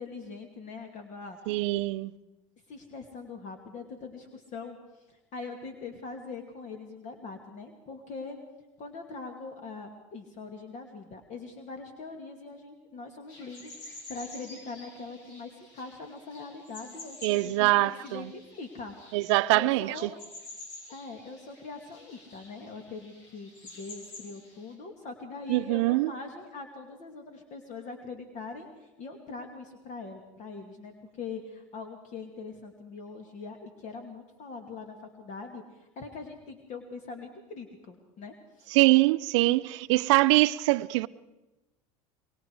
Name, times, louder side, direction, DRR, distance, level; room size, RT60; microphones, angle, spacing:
voice 1, 0.0-1.6 2.7-8.4 8.8-20.2 20.9-38.7 39.5-39.6, left 4 dB, 50° left, 2.6 m, -42 dB
voice 2, 1.5-2.1 17.2-18.3 19.1-20.1 25.5-26.1 38.7-41.1, right 20 dB, 75° right, 0.7 m, -23 dB
sound 1, 13.3-24.7, left 2 dB, 75° left, 7.2 m, -49 dB
24.5 x 22.5 x 4.8 m
hypercardioid pair, 85°, 16 cm